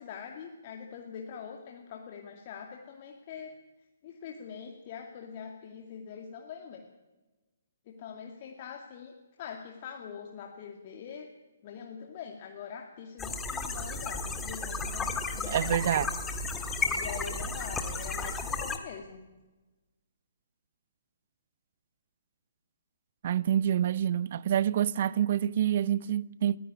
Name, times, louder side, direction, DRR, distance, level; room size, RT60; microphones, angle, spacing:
voice 1, 0.0-3.5 4.0-6.9 7.9-11.3 11.6-15.8 16.9-19.2, left 7 dB, 35° left, 2.2 m, -43 dB
sound 1, 13.2-18.8, left 3 dB, 10° left, 1.7 m, -33 dB
voice 2, 15.5-16.1 23.2-26.6, right 10 dB, 45° right, 0.6 m, -27 dB
21.0 x 15.5 x 9.9 m
figure-of-eight pair, 125°, 0 cm